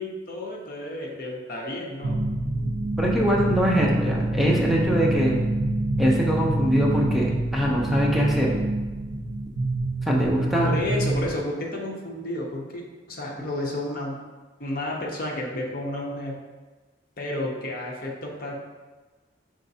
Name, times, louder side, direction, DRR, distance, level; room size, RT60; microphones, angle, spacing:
voice 1, 0.0-2.2 10.6-14.2 14.6-16.4 17.2-18.6, left 1 dB, 50° left, -1 dB, 0.8 m, -31 dB
sound 1, 2.0-11.3, right 2 dB, 85° right, 0.6 m, -26 dB
voice 2, 3.0-5.4 6.0-8.5 10.0-10.7, equal, ahead, -3 dB, 0.5 m, -23 dB
5.0 x 3.2 x 2.7 m, 1.2 s
head